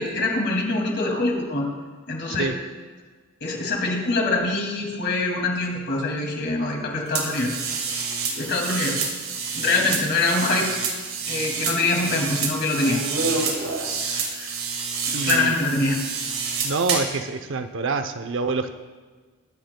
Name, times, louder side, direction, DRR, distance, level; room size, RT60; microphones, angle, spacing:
voice 1, 0.0-1.7 2.1-2.5 3.4-7.5 8.3-9.0 9.5-10.7 11.3-13.0 14.0-14.5 15.2-16.0, left 2 dB, 55° left, 0 dB, 2.4 m, -24 dB
sound 1, 7.1-17.2, right 5 dB, 80° right, 2.0 m, -28 dB
voice 2, 15.1-15.5 16.6-18.8, right 4 dB, 65° right, 8 dB, 0.7 m, -26 dB
21.0 x 10.0 x 2.2 m, 1.4 s
head